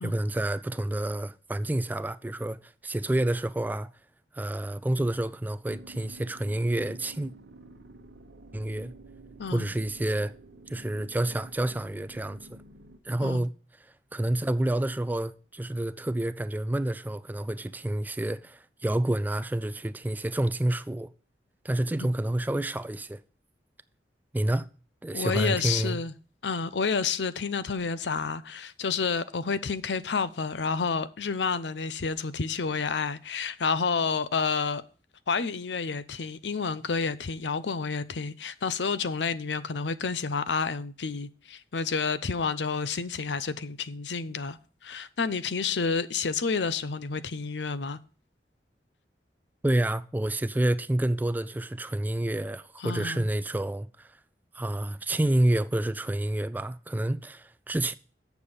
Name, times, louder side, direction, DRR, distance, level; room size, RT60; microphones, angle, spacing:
voice 1, 0.0-3.9 4.3-7.3 8.5-8.9 9.5-10.3 10.7-12.6 13.1-13.5 14.1-21.1 21.6-23.2 24.3-24.7 25.0-26.0 49.6-54.1 54.5-57.9, right 1 dB, 10° right, 0.3 m, -28 dB
sound 1, 5.7-13.0, right 2 dB, 80° right, 1.0 m, -50 dB
voice 2, 25.1-26.1 26.4-34.8 35.3-44.6 44.8-48.0 52.8-53.3, left 5 dB, 90° left, 0.7 m, -30 dB
8.2 x 6.8 x 5.5 m
head